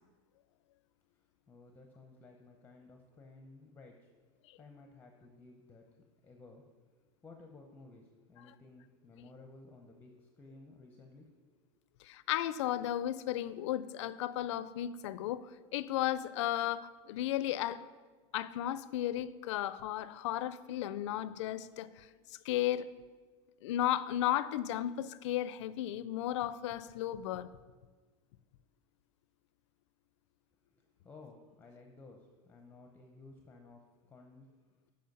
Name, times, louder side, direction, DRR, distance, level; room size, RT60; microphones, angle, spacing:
voice 1, 1.5-4.1 4.6-5.9 6.2-6.6 7.2-11.3 31.0-33.8 34.1-34.5, left 3 dB, 10° left, 3 dB, 0.7 m, -55 dB
voice 2, 12.0-15.5 15.7-17.8 18.3-22.9 23.6-27.5, left 12 dB, 80° left, 15 dB, 0.4 m, -34 dB
7.8 x 5.2 x 5.3 m, 1.4 s
supercardioid pair, 135°, 15 cm